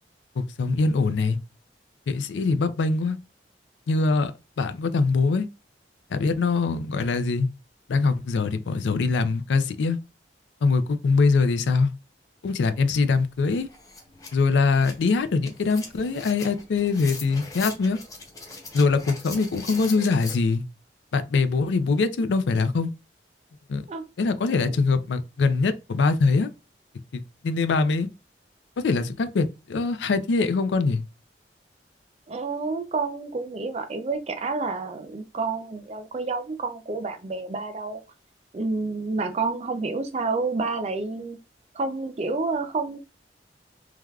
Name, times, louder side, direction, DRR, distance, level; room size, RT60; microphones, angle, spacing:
voice 1, 0.4-1.4 2.1-3.2 3.9-4.3 4.6-5.5 6.1-7.5 7.9-10.0 10.6-11.9 12.4-13.7 14.3-18.0 18.7-20.6 21.1-22.9 23.7-23.8 24.2-26.5 27.1-28.1 28.8-31.0, left 4 dB, 85° left, 0.4 m, -23 dB
sound 1, 13.1-13.2 13.5-20.4, left 3 dB, 20° left, 0.6 m, -40 dB
voice 2, 32.3-38.0 38.5-41.4 41.7-43.0, right 3 dB, 35° right, 0.4 m, -29 dB
3.3 x 2.3 x 2.3 m
head